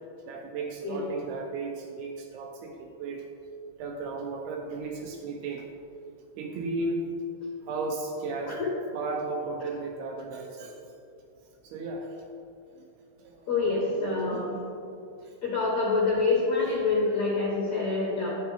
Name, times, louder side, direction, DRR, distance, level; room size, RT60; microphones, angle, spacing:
voice 1, 0.3-3.3 3.8-5.7 6.4-7.0 7.6-8.6 8.9-10.8 11.6-12.2 12.8-12.9 13.2-13.5 14.0-14.5 15.3-15.4 16.6-16.7, right 3 dB, 80° right, 2 dB, 2.4 m, -35 dB
voice 2, 13.5-14.6 15.4-18.3, left 3 dB, 90° left, -4 dB, 1.6 m, -26 dB
11.0 x 8.3 x 3.4 m, 2.6 s
omnidirectional pair, 5.1 m